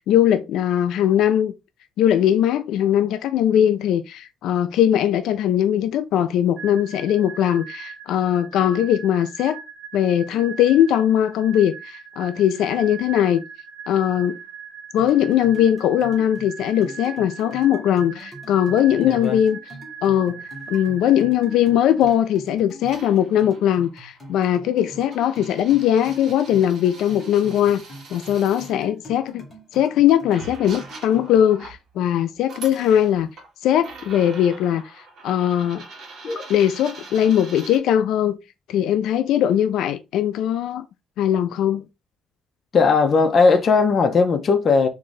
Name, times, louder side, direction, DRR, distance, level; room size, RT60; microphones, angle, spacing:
voice 1, 0.0-1.5 2.0-9.6 9.9-13.4 13.9-14.4 14.9-19.6 20.0-20.4 20.7-27.8 28.1-29.4 29.7-33.3 33.6-34.8 35.2-35.8 36.5-38.4 38.7-40.8 41.2-41.8, left 10 dB, 85° left, 0.3 m, -20 dB
sound 1, 6.6-22.2, right 6 dB, 20° right, 0.9 m, -40 dB
sound 2, 15.0-31.5, right 1 dB, 15° left, 1.5 m, -43 dB
voice 2, 19.0-19.4 36.2-36.5 42.7-44.9, left 4 dB, 35° left, 0.6 m, -18 dB
sound 3, 22.1-22.2 22.8-28.7 29.8-29.9 30.3-31.8 32.4-33.5 33.8-37.8, right 3 dB, 50° right, 1.2 m, -43 dB
3.7 x 2.6 x 3.1 m
cardioid pair, 165°, 0 cm